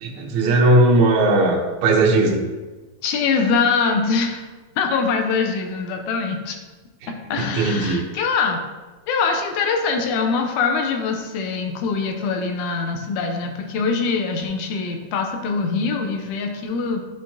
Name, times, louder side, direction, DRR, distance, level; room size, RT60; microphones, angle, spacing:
voice 1, 0.0-2.4 7.4-8.0, right 2 dB, 80° right, -1 dB, 2.4 m, -18 dB
voice 2, 3.0-4.5 4.8-6.6 7.1-8.6 9.1-17.0, left 5 dB, 90° left, 4 dB, 2.2 m, -23 dB
11.0 x 4.6 x 2.8 m, 1.2 s
omnidirectional pair, 3.4 m